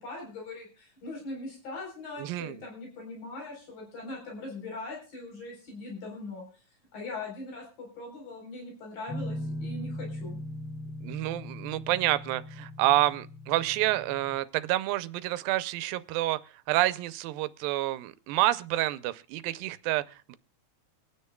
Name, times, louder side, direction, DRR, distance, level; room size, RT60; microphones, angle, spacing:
voice 1, 0.0-6.6 6.9-10.4, left 2 dB, 80° left, 6.0 m, -41 dB
voice 2, 2.2-2.6 11.0-16.4 16.7-20.4, right 15 dB, 85° right, 2.4 m, -28 dB
Guitar, 9.1-14.3, left 1 dB, ahead, 1.6 m, -39 dB
25.5 x 9.6 x 2.3 m
omnidirectional pair, 4.0 m